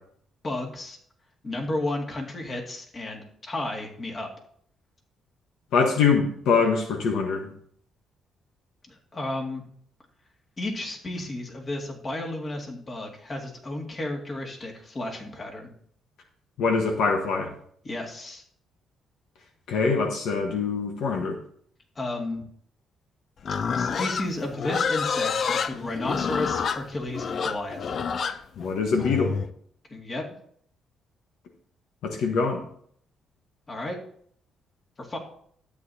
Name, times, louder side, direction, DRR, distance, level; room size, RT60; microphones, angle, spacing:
voice 1, 0.4-1.0 1.4-4.3 8.9-9.6 10.6-15.7 17.8-18.4 22.0-22.5 23.8-28.0 29.9-30.3 33.7-34.0 35.0-35.2, left 2 dB, 35° left, 0 dB, 2.1 m, -33 dB
voice 2, 5.7-7.5 16.6-17.5 19.7-21.4 28.6-29.3 32.0-32.6, left 5 dB, 80° left, 3 dB, 1.2 m, -24 dB
Livestock farm animals working animals, 23.4-29.5, left 6 dB, 55° left, 0.5 m, -28 dB
12.5 x 8.4 x 2.8 m, 0.63 s
cardioid pair, 90°, 0 cm